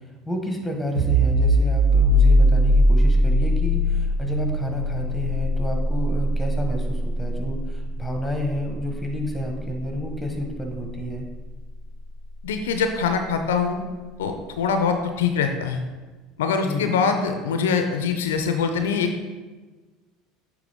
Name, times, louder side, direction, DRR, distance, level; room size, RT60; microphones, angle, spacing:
voice 1, 0.3-11.3 16.6-16.9, left 1 dB, ahead, 2 dB, 1.4 m, -30 dB
sound 1, 1.0-12.4, equal, 80° right, 1.2 m, -22 dB
voice 2, 12.4-13.8 14.2-15.8 16.4-19.3, left 5 dB, 80° left, 6 dB, 0.5 m, -23 dB
8.3 x 3.4 x 3.6 m, 1.3 s
hypercardioid pair, 75°, 0 cm